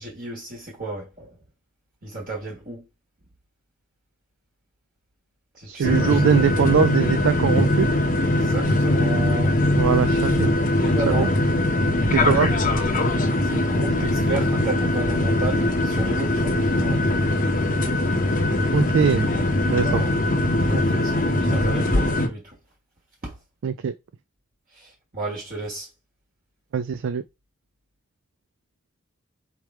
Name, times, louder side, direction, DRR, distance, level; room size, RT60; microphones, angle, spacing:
voice 1, 0.0-1.4 2.0-2.8 5.5-6.2 8.2-9.5 10.8-11.3 13.4-17.0 19.8-20.2 20.6-22.6 23.2-23.3 24.7-25.9, right 2 dB, 45° right, 1.4 m, -33 dB
voice 2, 5.7-7.9 9.8-10.5 11.1-11.3 12.1-12.5 18.7-19.3 19.7-20.0 23.6-23.9 26.7-27.2, right 6 dB, 65° right, 0.4 m, -21 dB
sound 1, 5.8-22.3, left 1 dB, 40° left, 0.8 m, -21 dB
4.5 x 3.3 x 3.5 m
head